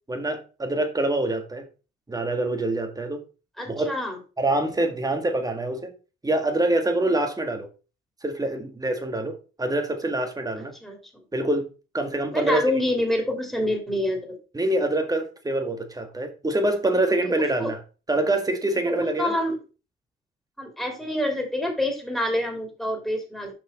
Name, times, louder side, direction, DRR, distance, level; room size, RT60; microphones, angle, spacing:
voice 1, 0.1-1.7 2.1-3.2 3.6-3.9 4.4-5.9 6.2-7.7 8.2-10.7 11.3-11.7 11.9-12.6 14.5-17.8 18.1-19.4, right 2 dB, 20° right, 1.7 m, -25 dB
voice 2, 3.6-4.2 10.8-11.0 12.3-14.2 17.2-17.7 18.8-19.6 20.6-23.5, left 1 dB, ahead, 3.0 m, -27 dB
6.3 x 5.6 x 4.2 m
cardioid pair, 90°, 20 cm